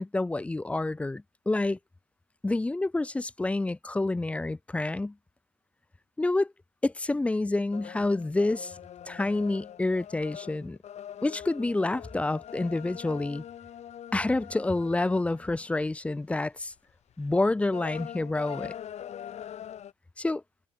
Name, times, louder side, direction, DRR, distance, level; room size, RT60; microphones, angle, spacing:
voice 1, 0.0-1.8 2.4-5.1 6.2-6.5 6.8-8.7 9.0-10.8 11.2-13.4 14.1-16.7 17.2-18.7 20.2-20.4, left 2 dB, 10° left, 0.4 m, -28 dB
sound 1, 7.7-16.0 16.4-16.7 17.1-19.9, left 10 dB, 45° left, 1.8 m, -43 dB
hypercardioid pair, 65°, 16 cm